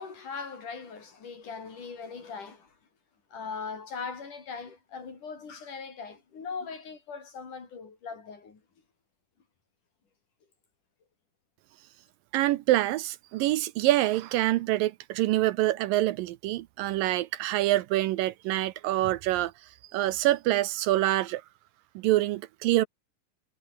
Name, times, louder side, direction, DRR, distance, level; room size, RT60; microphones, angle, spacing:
voice 1, 0.0-2.7 3.3-8.6, left 5 dB, 55° left, 6.0 m, -40 dB
voice 2, 12.3-19.5 19.9-21.4 22.0-22.9, right 16 dB, 75° right, 2.3 m, -26 dB
omnidirectional pair, 4.2 m